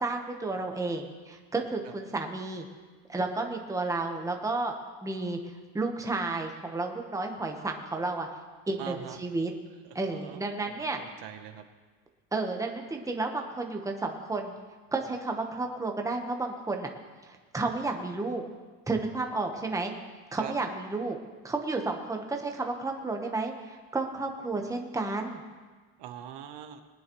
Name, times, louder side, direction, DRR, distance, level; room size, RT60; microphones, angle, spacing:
voice 1, 0.0-2.7 3.1-4.7 5.0-5.4 5.7-8.3 8.7-9.5 9.9-11.0 12.3-14.5 14.9-16.9 17.3-18.4 18.9-19.9 20.3-21.2 21.4-25.4, right 3 dB, 5° right, 3 dB, 1.0 m, -32 dB
voice 2, 8.8-9.2 9.8-11.6 20.4-20.5 26.0-26.8, right 10 dB, 65° right, 8 dB, 1.0 m, -43 dB
20.5 x 9.5 x 3.1 m, 1.4 s
cardioid pair, 135°, 44 cm